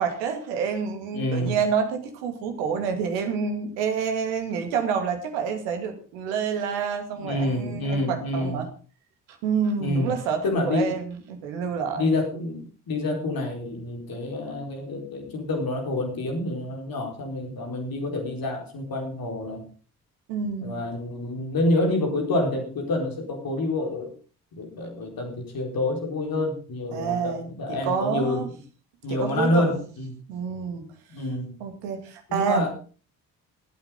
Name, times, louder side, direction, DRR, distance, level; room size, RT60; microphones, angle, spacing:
voice 1, 0.0-8.7 9.3-12.0 20.3-20.8 26.9-27.5 27.9-28.5 29.1-29.8 30.3-30.9 31.6-32.6, right 6 dB, 65° right, 6 dB, 2.4 m, -28 dB
voice 2, 1.1-1.6 7.1-8.6 9.6-10.1 10.4-10.9 11.9-19.6 20.6-24.1 24.5-28.4 29.0-30.1 31.1-31.5 32.3-32.7, left 2 dB, 45° left, 3 dB, 4.5 m, -27 dB
21.5 x 9.1 x 3.9 m, 0.38 s
figure-of-eight pair, 45°, 47 cm